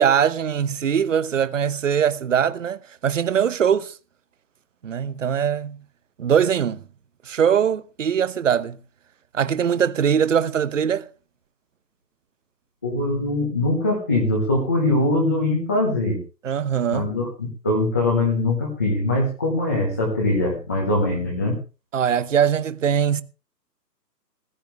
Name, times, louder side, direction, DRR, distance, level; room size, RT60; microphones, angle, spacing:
voice 1, 0.0-3.9 4.8-5.8 6.2-6.8 7.3-8.8 9.3-11.1 16.4-17.1 21.9-23.2, right 8 dB, 50° right, 1.0 m, -21 dB
voice 2, 12.8-16.2 16.9-21.6, left 2 dB, 10° left, 0.8 m, -22 dB
15.5 x 15.0 x 3.4 m
hypercardioid pair, 165°, 50 cm